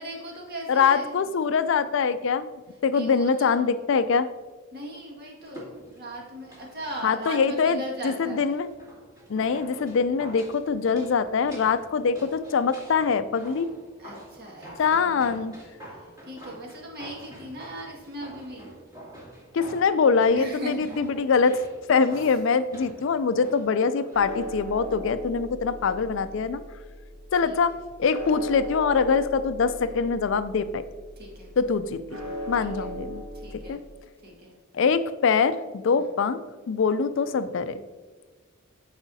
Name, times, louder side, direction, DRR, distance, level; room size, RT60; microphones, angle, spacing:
voice 1, 0.0-1.2 2.9-3.6 4.7-8.5 14.0-15.6 16.0-18.7 20.3-21.3 22.1-22.3 27.4-27.6 31.2-31.5 32.6-32.9 33.3-33.8 34.2-34.6 36.0-36.1, right 1 dB, 50° right, -1 dB, 1.9 m, -39 dB
voice 2, 0.7-2.5 2.8-4.3 7.0-8.7 9.3-13.7 14.8-15.5 19.5-21.6 21.9-26.6 27.3-30.8 31.6-32.0 32.5-33.2 33.7-33.8 34.7-36.4 36.7-37.8, left 5 dB, 65° left, 13 dB, 0.4 m, -23 dB
sound 1, 5.4-24.2 24.5-24.6, right 1 dB, 20° right, 2.5 m, -46 dB
sound 2, 24.1-33.7, equal, 90° right, 1.7 m, -38 dB
14.0 x 4.9 x 2.7 m, 1.4 s
head